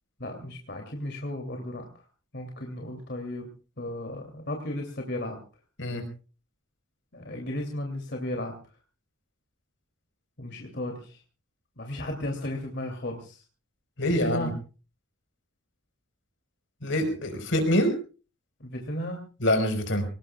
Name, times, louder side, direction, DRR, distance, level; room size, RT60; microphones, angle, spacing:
voice 1, 0.2-1.9 2.3-3.5 3.8-5.4 7.1-8.5 10.4-11.2 11.8-13.4 14.1-14.5 18.6-19.3, left 1 dB, 60° left, 2 dB, 2.9 m, -34 dB
voice 2, 14.0-14.5 16.8-17.9 19.4-20.1, left 1 dB, 80° left, 6 dB, 4.8 m, -25 dB
25.0 x 19.0 x 2.4 m, 0.35 s
head